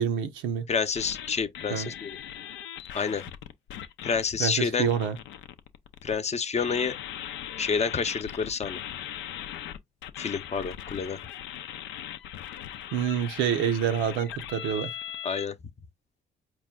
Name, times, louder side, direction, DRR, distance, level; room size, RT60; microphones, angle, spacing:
voice 1, 0.0-0.7 1.7-1.9 4.4-5.2 12.9-14.9, right 8 dB, 80° right, 0.7 m, -27 dB
voice 2, 0.7-2.2 2.9-3.2 4.0-4.9 6.0-6.9 7.6-8.8 10.2-11.2 15.2-15.5, left 5 dB, 35° left, 0.7 m, -28 dB
sound 1, 0.9-4.2 4.8-6.1 6.6-15.5, left 11 dB, 80° left, 0.5 m, -39 dB
4.7 x 2.2 x 3.5 m
supercardioid pair, 60°, 19 cm